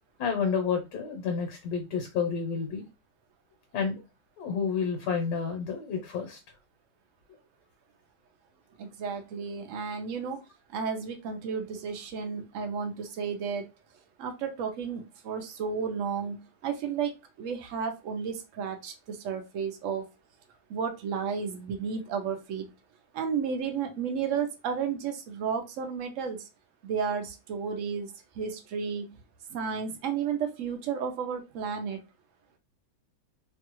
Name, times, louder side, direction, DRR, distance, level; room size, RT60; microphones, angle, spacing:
voice 1, 0.2-2.9 3.7-4.0 4.4-6.4, left 6 dB, 70° left, 1.3 m, -30 dB
voice 2, 8.8-10.4 10.7-13.7 14.2-17.1 17.4-20.1 20.7-22.7 23.1-26.5 26.8-29.1 29.5-32.0, right 6 dB, 65° right, 0.7 m, -32 dB
3.1 x 2.3 x 2.9 m
omnidirectional pair, 1.9 m